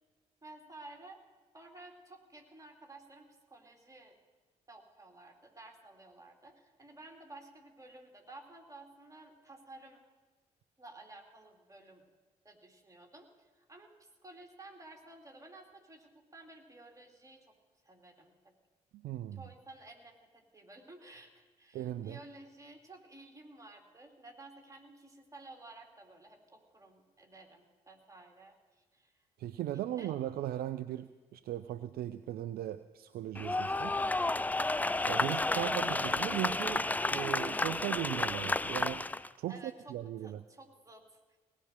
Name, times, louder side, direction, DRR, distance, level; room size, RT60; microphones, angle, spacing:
voice 1, 0.4-1.2 1.5-4.2 4.7-10.0 10.8-12.0 12.4-17.5 17.8-18.5 19.4-29.2 29.7-30.1 35.2-35.8 39.5-39.9 40.2-41.4, right 2 dB, 15° right, 2 dB, 2.6 m, -53 dB
voice 2, 18.9-19.4 21.7-22.2 29.4-34.0 35.1-39.0 39.4-40.4, right 13 dB, 50° right, 13 dB, 0.5 m, -38 dB
sound 1, 33.3-39.3, left 2 dB, 10° left, 0.4 m, -31 dB
17.5 x 6.1 x 8.9 m, 1.3 s
figure-of-eight pair, 40°, 20 cm